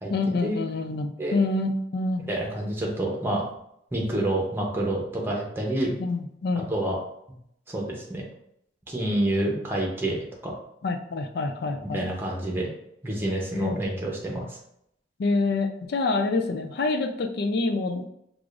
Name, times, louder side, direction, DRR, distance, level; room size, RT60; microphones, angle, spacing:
voice 1, 0.1-2.3 6.0-6.7 10.8-12.1 13.5-13.8 15.2-18.1, left 3 dB, 65° left, 6 dB, 0.4 m, -27 dB
voice 2, 2.3-3.4 3.9-5.9 6.7-7.0 7.7-8.2 8.9-10.2 10.4-10.5 11.8-12.7 13.0-14.6, right 1 dB, 15° right, -2 dB, 0.9 m, -28 dB
4.8 x 2.4 x 2.5 m, 0.74 s
head